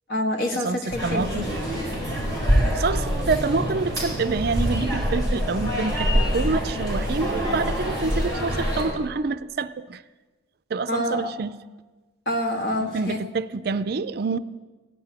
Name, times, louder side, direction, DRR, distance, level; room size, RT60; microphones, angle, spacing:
voice 1, 0.1-1.5 10.9-11.4 12.3-13.2, left 1 dB, 65° left, 3 dB, 1.7 m, -27 dB
voice 2, 0.6-1.5 2.7-10.0 10.7-11.5 12.8-14.4, right 4 dB, 55° right, 13 dB, 0.4 m, -27 dB
sound 1, 0.9-8.8, equal, 20° left, 6.4 m, -25 dB
16.5 x 6.2 x 9.7 m, 1.2 s
head